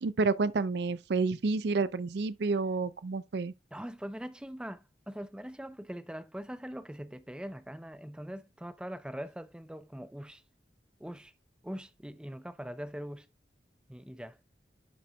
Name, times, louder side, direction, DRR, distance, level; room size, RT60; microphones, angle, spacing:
voice 1, 0.0-3.5, right 4 dB, 70° right, 0.4 m, -29 dB
voice 2, 3.7-10.4 11.0-11.3 11.6-13.3 13.9-14.4, equal, 5° right, 0.4 m, -42 dB
11.0 x 4.3 x 2.2 m
head